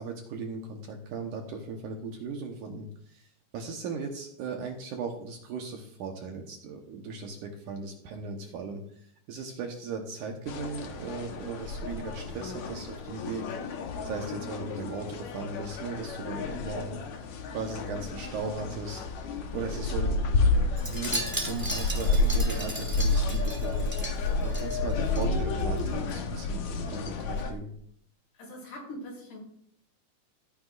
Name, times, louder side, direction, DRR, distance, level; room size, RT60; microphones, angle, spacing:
voice 1, 0.0-3.3 3.5-8.8 9.3-17.0 17.5-19.1 19.5-23.9 24.4-27.7, right 4 dB, 70° right, 2 dB, 1.9 m, -37 dB
sound 1, 10.5-27.5, left 3 dB, 85° left, 1.6 m, -30 dB
Wind chime, 20.8-25.2 25.5-25.8 26.1-26.2, right 1 dB, 10° right, 1.0 m, -36 dB
voice 2, 28.3-29.4, left 1 dB, 70° left, -4 dB, 7.0 m, -42 dB
16.5 x 9.5 x 2.5 m, 0.65 s
omnidirectional pair, 5.0 m